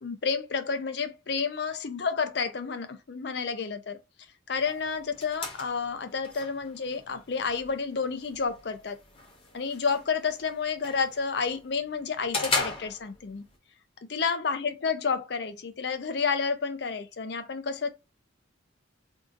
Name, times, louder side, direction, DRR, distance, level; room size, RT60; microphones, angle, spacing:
voice 1, 0.0-4.0 4.5-9.0 9.5-13.5 14.1-17.9, left 5 dB, 55° left, 0.5 m, -30 dB
sound 1, 4.6-13.6, left 3 dB, 30° left, 0.9 m, -38 dB
2.7 x 2.4 x 3.7 m
head